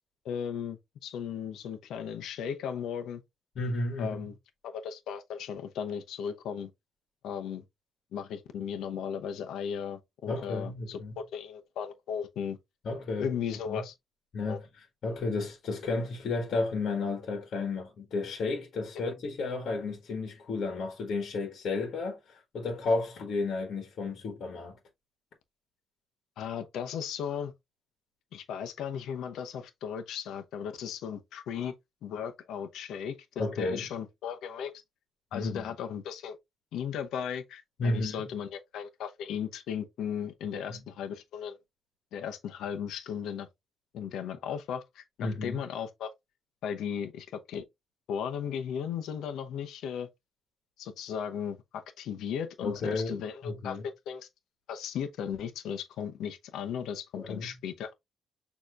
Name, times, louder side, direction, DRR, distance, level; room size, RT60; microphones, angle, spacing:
voice 1, 0.2-3.2 4.0-4.3 4.6-6.7 7.2-7.6 8.1-12.6 13.2-13.9 14.5-14.6 26.4-27.5 28.3-31.7 32.0-34.7 35.3-36.4 36.7-41.6 42.1-43.5 43.9-46.1 46.6-47.6 48.1-50.1 50.8-54.3 54.7-57.9, left 8 dB, 80° left, 0.7 m, -36 dB
voice 2, 3.5-4.2 10.3-11.2 12.8-13.4 13.7-13.8 14.3-24.8 33.4-33.9 35.3-35.6 37.8-38.3 40.5-40.8 45.2-45.6 52.6-53.8 57.1-57.6, left 3 dB, 50° left, 1.5 m, -33 dB
6.5 x 2.9 x 2.5 m
cardioid pair, 150°, 0 cm